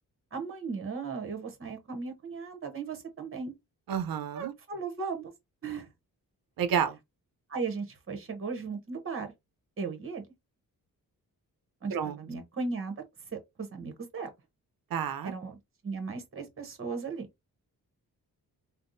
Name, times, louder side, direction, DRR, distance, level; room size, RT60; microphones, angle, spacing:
voice 1, 0.3-3.5 4.3-5.3 5.6-5.9 7.5-9.3 9.8-10.3 11.8-13.0 13.3-14.3 15.2-15.6 15.8-17.3, right 4 dB, 35° right, 0.9 m, -36 dB
voice 2, 3.9-4.5 6.6-7.0 11.9-12.2 14.9-15.3, right 8 dB, 70° right, 0.6 m, -30 dB
3.4 x 2.1 x 2.6 m
cardioid pair, 75°, 36 cm